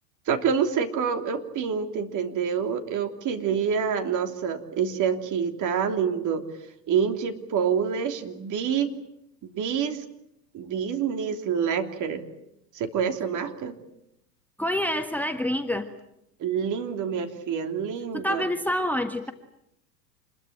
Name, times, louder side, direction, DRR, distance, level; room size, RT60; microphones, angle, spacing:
voice 1, 0.3-6.4 6.9-8.9 9.5-10.0 10.5-12.3 12.7-13.7 16.4-18.5, right 7 dB, 40° right, 6 dB, 3.2 m, -27 dB
voice 2, 14.6-15.9 18.1-19.3, left 1 dB, 5° left, 7 dB, 1.4 m, -27 dB
27.5 x 21.5 x 8.9 m, 0.80 s
hypercardioid pair, 95°, 49 cm